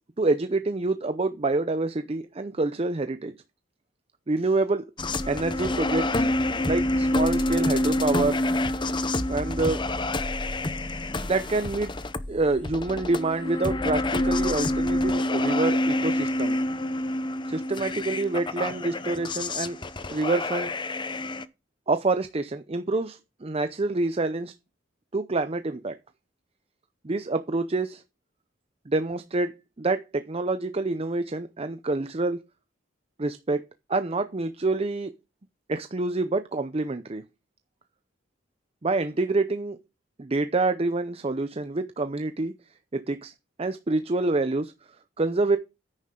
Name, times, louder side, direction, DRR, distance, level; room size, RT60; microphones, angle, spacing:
voice 1, 0.2-3.3 4.3-4.8 5.3-6.3 6.7-8.4 9.3-9.8 11.2-11.9 12.3-16.6 17.5-20.7 21.9-24.5 25.1-25.9 27.0-28.0 28.9-32.4 33.2-33.6 33.9-35.1 35.7-37.2 38.8-39.8 40.2-42.5 42.9-43.3 43.6-44.7 45.2-45.6, right 3 dB, 30° right, 0.6 m, -27 dB
sound 1, 5.0-21.4, left 1 dB, 25° left, 0.7 m, -27 dB
9.8 x 9.7 x 3.8 m
head